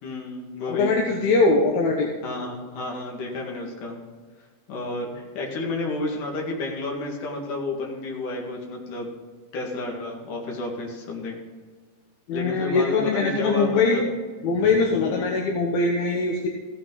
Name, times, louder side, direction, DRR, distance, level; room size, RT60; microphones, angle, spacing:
voice 1, 0.0-1.0 2.2-4.0 4.7-9.1 9.5-11.4 12.3-14.0 15.0-15.3, left 2 dB, 50° left, -1 dB, 3.1 m, -31 dB
voice 2, 0.7-2.1 12.3-14.0 14.4-16.5, left 3 dB, 70° left, 1 dB, 2.4 m, -22 dB
15.5 x 9.0 x 4.0 m, 1.4 s
omnidirectional pair, 5.5 m